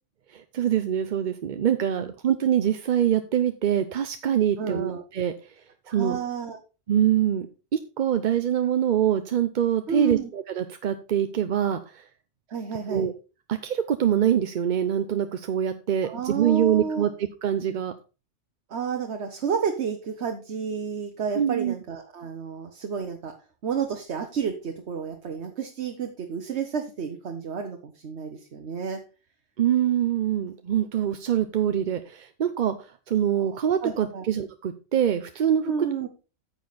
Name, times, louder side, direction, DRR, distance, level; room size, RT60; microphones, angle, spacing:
voice 1, 0.3-5.3 5.9-6.2 6.9-7.5 7.7-12.0 12.9-13.1 13.5-17.9 21.3-21.7 29.6-35.9, right 9 dB, 50° right, 9 dB, 0.6 m, -24 dB
voice 2, 4.6-5.0 5.9-6.6 9.9-10.3 12.5-13.1 16.0-17.1 18.7-23.3 23.6-29.0 33.4-33.5 33.8-34.3 35.6-36.1, right 6 dB, 65° right, 4 dB, 1.3 m, -31 dB
9.4 x 6.8 x 4.0 m, 0.32 s
omnidirectional pair, 1.2 m